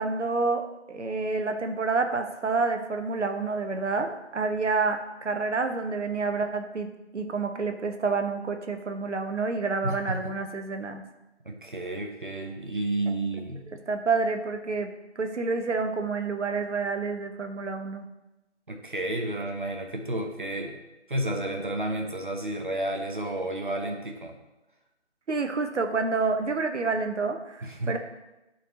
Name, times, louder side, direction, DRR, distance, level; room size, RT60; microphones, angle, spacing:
voice 1, 0.0-11.0 13.1-13.2 13.9-14.9 15.2-18.1 25.3-28.0, right 4 dB, 75° right, 6 dB, 1.0 m, -28 dB
voice 2, 9.8-10.3 11.4-13.7 18.7-20.8 21.1-24.4 27.6-28.0, right 1 dB, 45° right, 2 dB, 0.8 m, -31 dB
11.0 x 4.3 x 3.1 m, 0.98 s
figure-of-eight pair, 175°, 36 cm